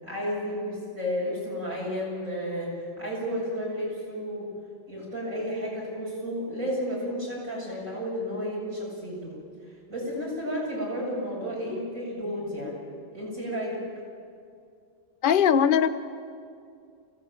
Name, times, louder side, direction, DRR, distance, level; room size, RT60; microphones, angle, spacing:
voice 1, 0.0-4.5 4.9-9.3 9.9-12.8 13.1-13.8, equal, 80° right, 8.2 m, -32 dB
voice 2, 15.2-15.9, left 8 dB, 45° left, 0.9 m, -20 dB
25.0 x 17.5 x 9.1 m
omnidirectional pair, 1.4 m